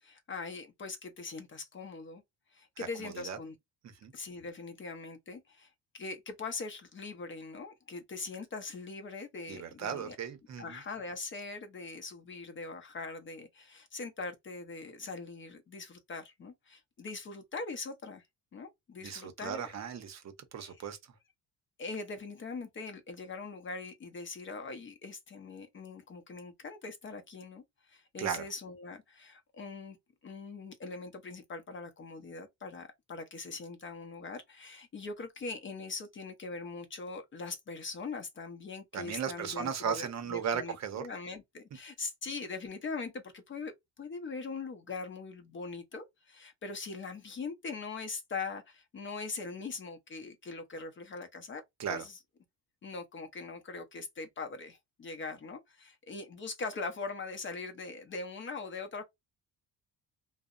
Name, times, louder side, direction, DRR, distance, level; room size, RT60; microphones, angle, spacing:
voice 1, 0.0-2.2 2.5-3.5 4.1-10.2 10.6-18.2 18.5-19.6 20.6-20.8 21.8-30.0 30.2-51.6 51.9-52.1 52.8-59.0, left 4 dB, 30° left, 0.6 m, -42 dB
voice 2, 2.8-3.4 3.8-4.1 9.5-10.8 19.0-21.0 28.2-28.5 38.9-41.0 51.8-52.0, right 7 dB, 45° right, 0.6 m, -36 dB
2.7 x 2.0 x 2.4 m
cardioid pair, 115°, 38 cm